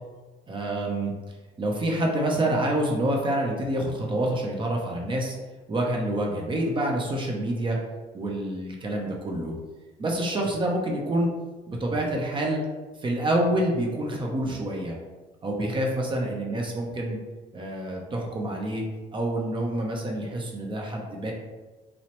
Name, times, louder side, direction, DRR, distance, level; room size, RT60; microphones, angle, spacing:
voice 1, 0.5-1.1 1.6-5.4 5.7-7.8 8.1-9.5 10.0-11.3 11.7-12.6 13.0-15.0 15.4-17.2 17.5-18.8 19.1-21.3, right 1 dB, 30° right, 0 dB, 0.6 m, -27 dB
4.3 x 2.0 x 2.9 m, 1.2 s
cardioid pair, 110°, 17 cm